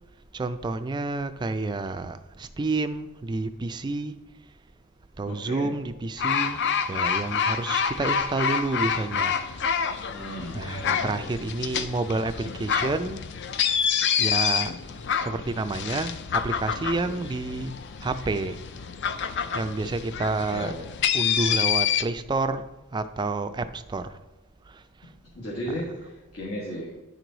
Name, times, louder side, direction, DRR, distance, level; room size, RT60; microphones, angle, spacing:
voice 1, 0.3-4.2 5.2-6.6 6.9-9.4 9.7-10.1 10.5-13.2 14.2-14.8 15.2-17.7 18.0-18.6 19.5-20.8 21.1-24.2 24.7-24.8 25.7-25.8, right 3 dB, 20° right, 10 dB, 0.3 m, -29 dB
voice 2, 5.3-5.7 10.1-11.1 20.5-20.9 25.2-27.0, equal, 70° left, -4 dB, 1.5 m, -35 dB
sound 1, 6.2-22.0, left 7 dB, 50° left, 0.4 m, -28 dB
10.0 x 4.7 x 3.9 m, 1.0 s
head